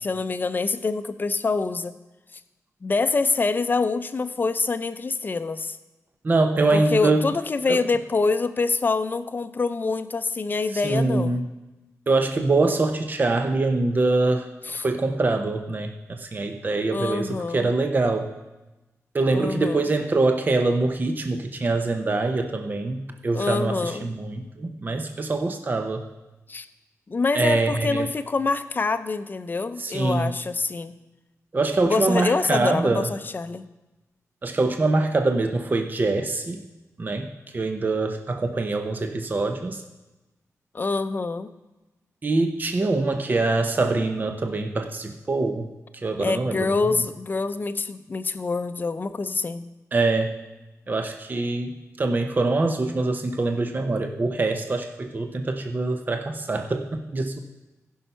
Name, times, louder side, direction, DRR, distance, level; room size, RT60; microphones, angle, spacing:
voice 1, 0.0-1.9 2.8-5.8 6.7-11.4 14.7-14.8 16.9-17.7 19.3-19.9 23.3-24.1 26.5-26.7 27.1-30.9 31.8-33.7 40.7-41.5 46.2-49.7, left 4 dB, 35° left, 11 dB, 0.6 m, -25 dB
voice 2, 6.2-7.3 7.7-7.8 10.7-11.4 12.1-18.3 19.1-26.0 27.3-28.1 29.8-30.4 31.5-33.1 34.4-36.6 37.0-39.8 42.2-46.7 49.9-50.4 50.9-57.4, right 3 dB, 35° right, 5 dB, 0.7 m, -24 dB
15.5 x 5.6 x 5.7 m, 1.1 s
wide cardioid pair, 105°, 5 cm